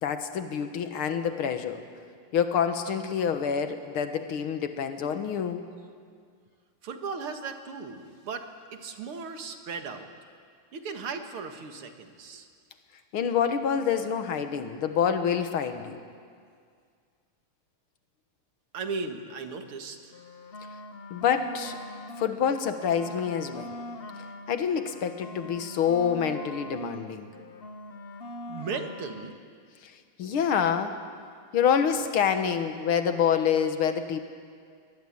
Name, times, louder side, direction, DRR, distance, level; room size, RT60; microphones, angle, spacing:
voice 1, 0.0-1.8 2.3-5.6 13.1-16.0 21.1-21.8 22.2-23.7 24.5-27.3 29.8-29.9 30.2-30.9 31.5-34.2, left 7 dB, 80° left, 8 dB, 2.2 m, -27 dB
voice 2, 6.8-10.1 10.7-12.5 18.7-20.1 28.5-29.3, right 4 dB, 80° right, 6 dB, 2.6 m, -36 dB
sound 1, 20.0-22.4 22.7-27.1 27.3-29.3, left 1 dB, 55° left, 0.6 m, -42 dB
23.5 x 19.5 x 8.7 m, 2.1 s
omnidirectional pair, 2.3 m